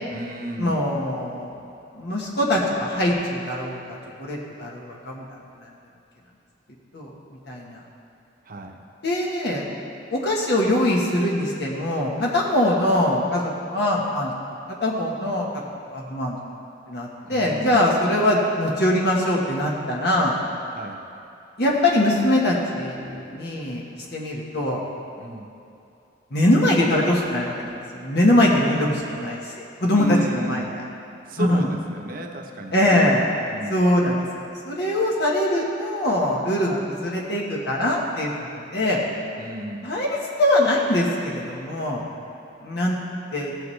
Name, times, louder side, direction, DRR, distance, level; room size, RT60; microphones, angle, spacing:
voice 1, 0.1-0.8 8.4-8.8 17.2-17.9 20.7-21.0 25.2-25.5 29.9-30.8 31.3-33.0 33.5-33.9 39.4-39.9, right 2 dB, 50° right, 2 dB, 1.0 m, -33 dB
voice 2, 0.6-1.6 1.9-5.7 6.9-7.1 7.5-7.8 9.0-9.6 10.1-14.3 14.7-15.6 15.9-16.4 16.9-20.3 21.6-24.8 26.3-30.8 31.4-31.7 32.7-33.2 33.7-39.0 39.8-42.0 42.6-43.0 43.3-43.5, left 1 dB, 65° left, -3 dB, 1.4 m, -22 dB
16.0 x 8.3 x 3.3 m, 2.7 s
head